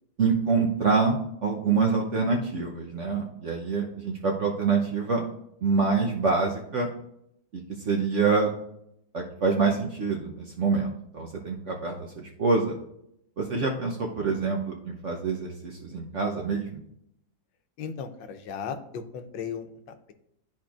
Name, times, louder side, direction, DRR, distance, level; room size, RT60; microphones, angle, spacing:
voice 1, 0.2-5.2 5.6-6.9 7.5-8.5 9.1-12.8 13.4-16.8, right 4 dB, 55° right, 0 dB, 0.8 m, -26 dB
voice 2, 17.8-20.1, left 6 dB, 90° left, 9 dB, 1.4 m, -36 dB
12.0 x 4.3 x 2.4 m, 0.74 s
omnidirectional pair, 2.0 m